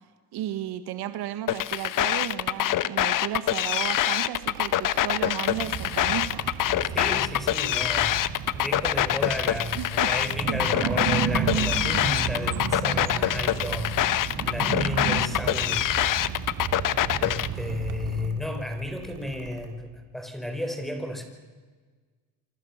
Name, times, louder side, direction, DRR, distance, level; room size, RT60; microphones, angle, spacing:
voice 1, 0.3-6.4 9.7-10.1 10.5-10.6, right 12 dB, 60° right, 10 dB, 1.6 m, -33 dB
sound 1, 1.5-17.5, left 13 dB, 45° left, 1.1 m, -25 dB
Mechanical fan, 4.4-19.7, right 10 dB, 80° right, 4.0 m, -46 dB
sound 2, 5.5-18.3, right 7 dB, 45° right, 2.7 m, -33 dB
voice 2, 6.9-8.3 8.5-15.9 16.2-16.5 17.2-21.2, left 1 dB, ahead, 6 dB, 4.9 m, -33 dB
28.0 x 24.5 x 7.3 m, 1.4 s
supercardioid pair, 105°, 44 cm